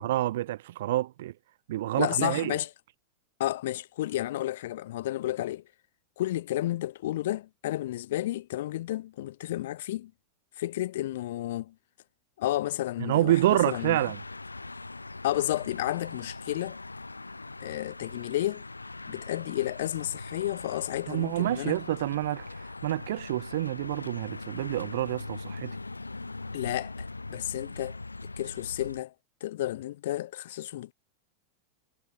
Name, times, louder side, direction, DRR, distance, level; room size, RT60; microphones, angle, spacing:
voice 1, 0.0-1.3 1.7-2.6 13.0-14.2 21.1-25.8, right 14 dB, 55° right, 1.0 m, -28 dB
voice 2, 2.0-2.7 3.4-5.6 6.2-10.1 10.6-11.7 12.4-14.0 15.2-16.8 17.6-18.6 19.1-21.8 26.5-29.1 29.4-30.9, left 14 dB, 55° left, 3.1 m, -32 dB
sound 1, 13.3-29.0, left 3 dB, 80° left, 3.8 m, -41 dB
figure-of-eight pair, 90°, 0 cm